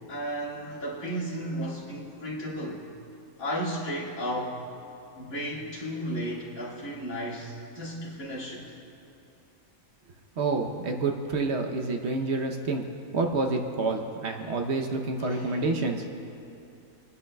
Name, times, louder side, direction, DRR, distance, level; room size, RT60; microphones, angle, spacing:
voice 1, 0.1-2.8 3.4-4.6 5.2-8.6 15.2-15.7, equal, 85° left, -6 dB, 2.4 m, -34 dB
voice 2, 10.4-12.9 13.1-16.0, right 3 dB, 60° right, 3 dB, 1.0 m, -28 dB
28.5 x 9.6 x 2.2 m, 2.6 s
omnidirectional pair, 1.4 m